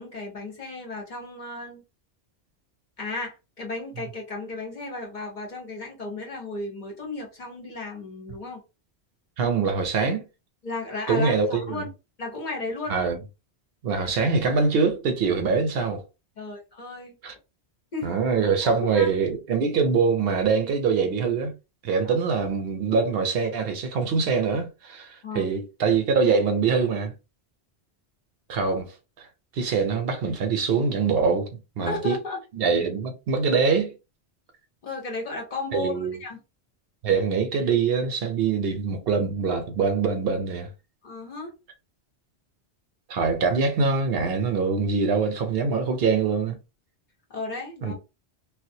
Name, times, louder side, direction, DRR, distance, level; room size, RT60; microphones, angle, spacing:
voice 1, 0.0-1.8 3.0-8.6 10.6-11.9 12.2-13.0 16.4-17.1 17.9-18.1 18.4-19.1 22.0-22.1 25.2-25.5 31.8-32.4 34.8-36.4 41.0-41.5 47.3-47.9, left 2 dB, 50° left, 0.8 m, -34 dB
voice 2, 9.4-10.2 11.1-11.8 12.9-13.2 13.8-16.0 17.2-17.3 18.0-21.5 21.8-27.1 28.5-28.9 29.5-31.5 31.8-32.2 32.5-33.9 35.7-36.1 37.0-40.7 43.1-46.6 47.8-47.9, right 5 dB, 70° right, 0.8 m, -24 dB
2.3 x 2.1 x 2.6 m
omnidirectional pair, 1.1 m